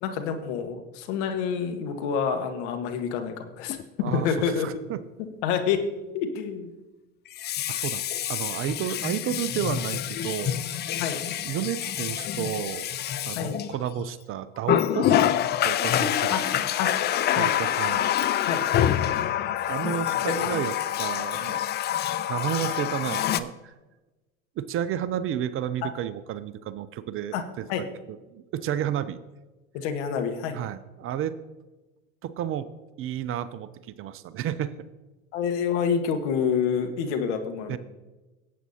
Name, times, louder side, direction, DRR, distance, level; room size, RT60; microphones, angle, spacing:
voice 1, 0.0-4.7 5.2-5.8 6.1-6.7 11.0-11.2 13.3-13.6 16.3-16.4 16.8-16.9 17.3-17.5 18.4-18.6 20.1-20.4 25.8-25.9 27.3-27.4 27.7-27.9 29.7-30.6 35.3-37.8, left 7 dB, 60° left, 6 dB, 1.6 m, -28 dB
Water tap faucet, 3.7-3.8 7.3-14.1 14.6-23.4, left 11 dB, 25° left, 0.4 m, -26 dB
voice 2, 4.0-5.0 7.7-8.0 8.3-10.6 11.4-12.9 13.3-15.1 15.6-16.7 17.3-18.1 19.7-21.7 22.3-23.7 24.6-29.2 30.5-31.4 32.2-32.7 33.0-34.7 37.7-37.8, right 10 dB, 35° right, 14 dB, 0.6 m, -31 dB
18.0 x 8.3 x 2.8 m, 1.1 s
hypercardioid pair, 85°, 39 cm